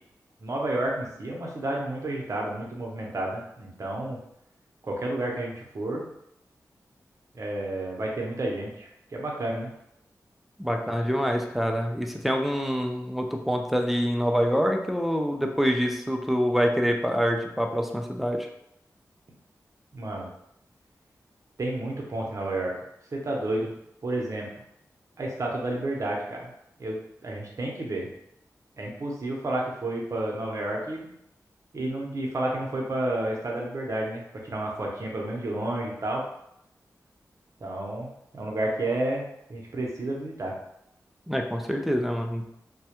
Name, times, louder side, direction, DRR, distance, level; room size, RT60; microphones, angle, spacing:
voice 1, 0.4-4.2 4.8-6.1 7.3-9.7 19.9-20.3 21.6-22.7 23.1-23.7 24.0-24.5 25.2-26.5 26.8-28.1 28.8-31.1 31.7-36.2 37.6-39.2 39.5-40.5, right 1 dB, 50° right, -1 dB, 0.7 m, -31 dB
voice 2, 10.6-18.5 41.3-42.5, equal, ahead, 3 dB, 0.3 m, -26 dB
2.2 x 2.1 x 2.8 m, 0.78 s
cardioid pair, 65°, 6 cm